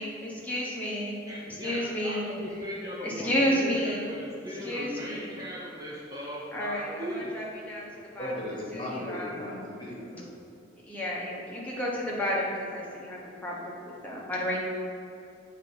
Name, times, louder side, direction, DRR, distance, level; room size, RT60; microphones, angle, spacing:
voice 1, 0.0-1.2 1.5-2.2 3.0-4.1 4.6-5.4 6.5-8.3 8.7-9.3 10.8-14.6, equal, 10° left, -6 dB, 1.1 m, -31 dB
voice 2, 1.3-7.3 7.8-7.9, equal, 15° right, -5 dB, 0.7 m, -38 dB
voice 3, 8.2-10.3, left 1 dB, 25° left, -5 dB, 1.4 m, -36 dB
7.4 x 3.7 x 5.3 m, 2.6 s
head